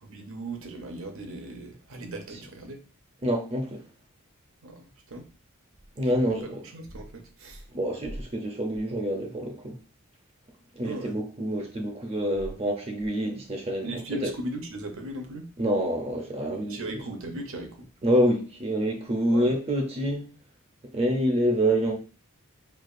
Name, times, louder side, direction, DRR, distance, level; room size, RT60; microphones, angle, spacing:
voice 1, 0.1-2.8 4.6-5.3 6.1-7.6 10.8-11.1 13.8-15.5 16.7-17.9 19.3-19.5, right 1 dB, 65° right, 0.8 m, -38 dB
voice 2, 3.2-3.8 6.0-6.6 7.7-9.8 10.7-14.2 15.6-17.0 18.0-20.3 20.9-22.0, equal, 30° right, 0.5 m, -27 dB
4.6 x 2.4 x 2.5 m
head